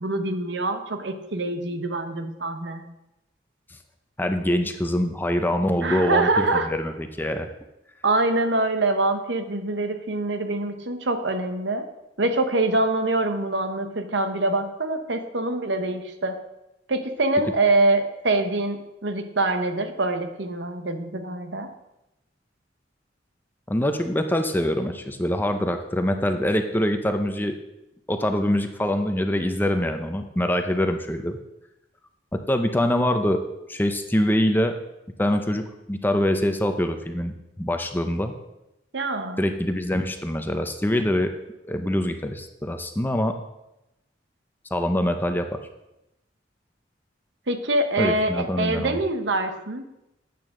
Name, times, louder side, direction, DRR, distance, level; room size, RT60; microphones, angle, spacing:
voice 1, 0.0-2.8 5.8-6.7 8.0-11.8 12.2-16.4 16.9-21.7 38.9-39.4 47.5-49.9, right 2 dB, 70° right, 7 dB, 1.1 m, -24 dB
voice 2, 4.2-6.9 7.2-7.5 23.7-27.6 28.1-31.4 32.3-33.4 33.7-34.7 35.2-38.3 39.4-41.3 41.6-43.3 44.7-45.5 48.0-49.0, left 1 dB, 10° left, 6 dB, 0.6 m, -24 dB
12.5 x 8.6 x 3.8 m, 0.90 s
head